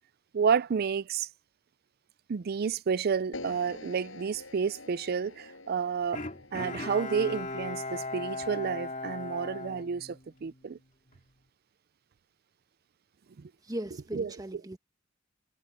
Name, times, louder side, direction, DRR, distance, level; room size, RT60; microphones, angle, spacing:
voice 1, 0.3-1.3 2.3-10.8 14.1-14.3, right 6 dB, 50° right, 0.4 m, -30 dB
sound 1, 3.3-9.5, left 2 dB, 90° left, 7.8 m, -48 dB
Bowed string instrument, 6.1-10.6 11.1-11.2, left 3 dB, 40° left, 2.4 m, -38 dB
voice 2, 13.6-14.8, right 1 dB, 20° right, 1.3 m, -38 dB
head